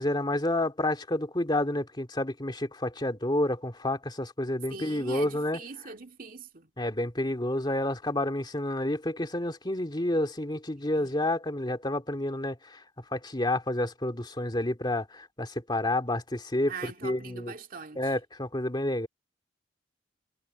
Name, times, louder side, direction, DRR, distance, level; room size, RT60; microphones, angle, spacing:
voice 1, 0.0-5.6 6.8-12.8 13.1-17.5 18.0-19.1, left 1 dB, 25° left, 2.4 m, -29 dB
voice 2, 4.7-6.7 11.0-11.1 16.7-18.1, right 5 dB, 50° right, 2.3 m, -42 dB
head